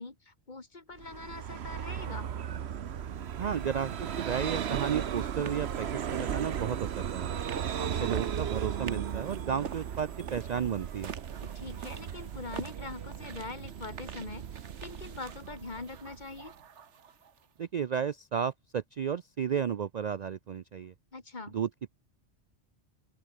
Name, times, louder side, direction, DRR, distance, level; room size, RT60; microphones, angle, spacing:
voice 1, 0.0-2.3 7.8-8.2 11.4-16.5 21.1-21.6, left 3 dB, 40° left, 2.1 m, -43 dB
Vehicle, 1.0-16.4, right 9 dB, 65° right, 1.1 m, -36 dB
voice 2, 3.4-7.4 8.0-11.1 17.6-20.9 21.5-21.7, right 8 dB, 50° right, 0.5 m, -33 dB
sound 1, 3.4-17.5, right 7 dB, 85° right, 1.5 m, -47 dB
open air
omnidirectional pair, 1.2 m